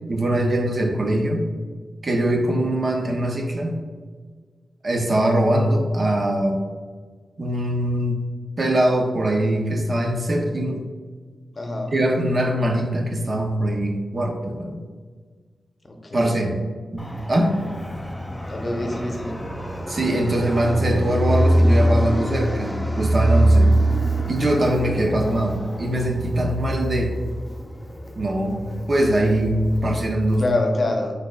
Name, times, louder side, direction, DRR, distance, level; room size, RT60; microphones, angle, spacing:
voice 1, 0.1-1.5 2.0-3.8 4.8-6.6 7.4-8.2 8.6-10.9 11.9-14.8 16.1-16.6 16.9-17.6 19.9-23.7 24.3-27.1 28.2-30.6, right 1 dB, 50° right, 2 dB, 0.7 m, -22 dB
voice 2, 11.5-11.9 15.8-16.5 18.5-19.4 30.4-31.2, left 2 dB, 40° left, 3 dB, 0.7 m, -26 dB
Fixed-wing aircraft airplane, 17.0-30.5, right 1 dB, 10° left, 0.5 m, -24 dB
4.8 x 4.5 x 2.3 m, 1.5 s
cardioid pair, 60°, 0 cm